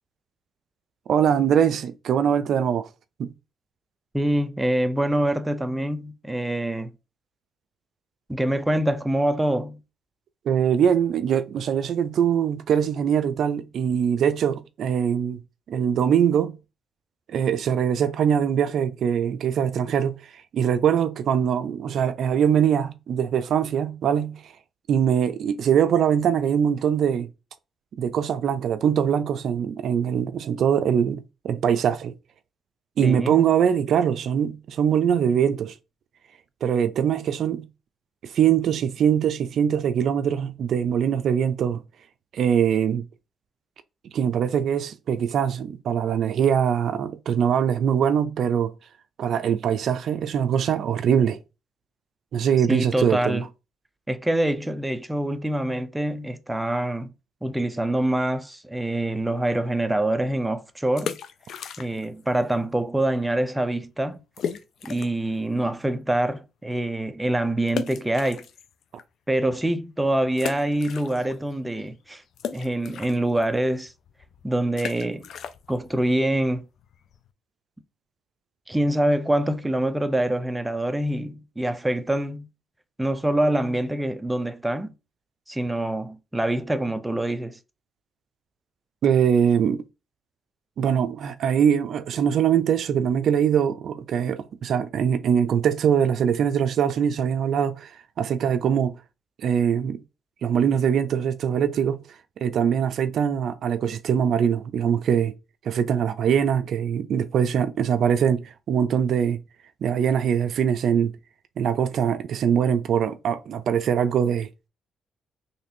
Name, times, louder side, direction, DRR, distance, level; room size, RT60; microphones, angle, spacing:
voice 1, 1.1-2.9 3.2-3.3 10.5-15.4 15.7-16.5 17.3-24.5 24.9-27.3 28.0-32.1 33.0-35.8 36.6-37.7 38.2-41.8 42.3-43.1 44.1-48.7 49.2-51.4 52.3-53.5 89.0-89.8 90.8-99.0 99.4-100.0 100.4-102.0 102.4-105.3 105.6-109.4 109.8-111.1 111.6-114.5, right 8 dB, 65° right, 0.4 m, -22 dB
voice 2, 4.1-6.9 8.3-9.8 33.0-33.4 52.7-53.4 54.1-57.1 57.4-61.2 61.8-64.2 64.8-68.4 69.3-72.2 72.5-73.9 74.4-75.3 75.7-76.6 78.7-82.5 83.0-84.9 85.5-87.6, right 1 dB, 10° right, 0.5 m, -25 dB
sound 1, 60.8-62.2 62.5-62.6 63.2-63.3 63.5-63.6 64.4-65.3 65.8-65.9 67.7-69.0 69.5-69.6 70.3-71.5 71.8-77.3, left 7 dB, 65° left, 0.4 m, -36 dB
4.2 x 3.2 x 2.7 m
cardioid pair, 90°, 0 cm